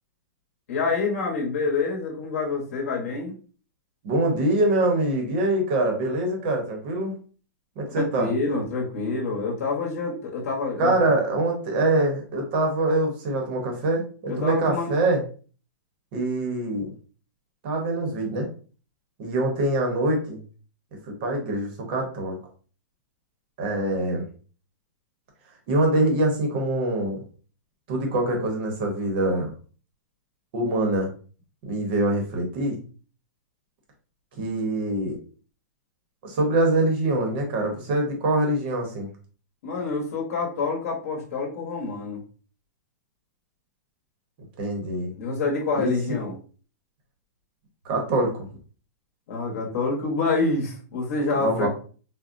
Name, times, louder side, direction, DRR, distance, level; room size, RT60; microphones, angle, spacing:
voice 1, 0.7-3.3 7.9-11.0 14.3-14.9 39.6-42.2 45.2-46.3 49.3-51.7, left 4 dB, 50° left, -1 dB, 0.9 m, -27 dB
voice 2, 4.0-7.2 7.8-8.3 10.8-15.2 16.1-16.9 17.6-18.5 19.2-20.4 21.1-22.4 23.6-24.3 25.7-27.2 27.9-29.5 30.5-31.1 31.6-32.7 34.4-35.2 36.2-39.1 44.6-45.1 45.7-45.9 47.8-48.5 51.4-51.7, right 2 dB, 30° right, 2 dB, 0.8 m, -24 dB
3.8 x 2.0 x 2.5 m, 0.39 s
hypercardioid pair, 175°, 10 cm